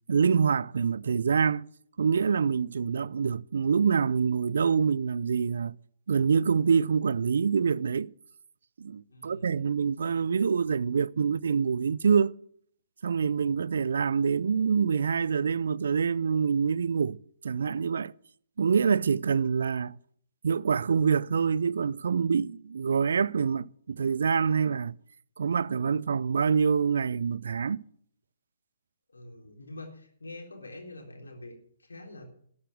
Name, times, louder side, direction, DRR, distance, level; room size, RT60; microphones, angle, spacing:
voice 1, 0.1-1.7 2.0-5.8 6.1-8.1 8.8-12.3 13.0-17.2 17.4-18.2 18.6-19.9 20.4-25.0 25.4-27.8, right 6 dB, 70° right, 0.4 m, -26 dB
voice 2, 9.1-9.6 29.1-32.3, left 2 dB, 85° left, 3.7 m, -45 dB
12.5 x 8.5 x 7.3 m
figure-of-eight pair, 130°, 0 cm